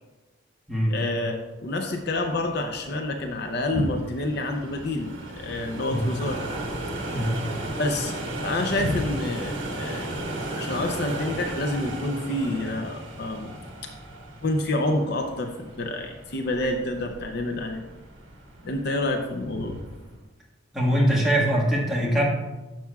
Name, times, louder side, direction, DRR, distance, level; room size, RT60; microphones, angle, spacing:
voice 1, 0.9-6.4 7.8-8.1 8.4-10.1 10.5-13.6 14.4-17.8 18.6-19.8, left 1 dB, 55° left, 4 dB, 0.6 m, -28 dB
sound 1, 1.8-20.1, right 1 dB, 65° right, 1.4 m, -36 dB
voice 2, 20.7-22.2, equal, ahead, -5 dB, 1.5 m, -22 dB
11.5 x 6.1 x 2.3 m, 1.1 s
head